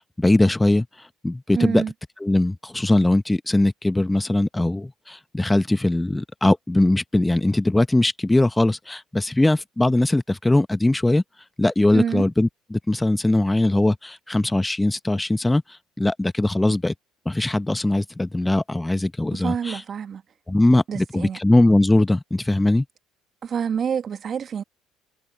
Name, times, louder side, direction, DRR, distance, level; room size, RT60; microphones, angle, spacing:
voice 1, 0.0-1.8 2.2-11.2 11.6-16.9 17.2-19.8 20.5-22.8, left 2 dB, 10° left, 1.4 m, -20 dB
voice 2, 1.6-1.9 11.9-12.3 19.3-20.2 20.9-21.4 23.4-24.6, right 7 dB, 45° right, 2.1 m, -27 dB
hypercardioid pair, 60°, 0 cm